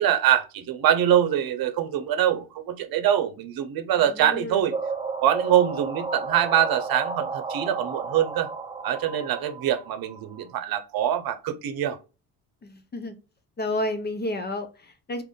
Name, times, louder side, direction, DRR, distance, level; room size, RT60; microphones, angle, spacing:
voice 1, 0.0-4.7 5.2-8.5 8.8-12.0, right 10 dB, 65° right, 0.8 m, -24 dB
voice 2, 4.0-4.7 12.6-13.1 13.6-15.2, left 1 dB, 25° left, 0.7 m, -31 dB
sound 1, 4.7-10.4, right 4 dB, 15° right, 0.6 m, -32 dB
2.8 x 2.6 x 3.7 m
cardioid pair, 90°, 39 cm